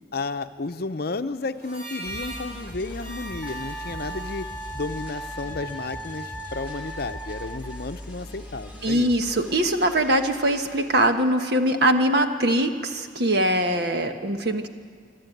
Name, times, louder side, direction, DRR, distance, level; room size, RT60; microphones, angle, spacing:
voice 1, 0.1-4.5 4.7-9.1 13.7-13.8, left 3 dB, 55° left, 10 dB, 0.7 m, -32 dB
Harmonica, 1.5-6.1, right 1 dB, 35° right, 5.5 m, -42 dB
sound 1, 2.0-11.1, equal, 5° right, 2.9 m, -41 dB
Wind instrument woodwind instrument, 3.4-7.9, right 1 dB, 10° left, 0.7 m, -38 dB
voice 2, 8.8-14.7, right 1 dB, 60° right, 6 dB, 1.4 m, -22 dB
26.5 x 11.5 x 9.2 m, 2.1 s
head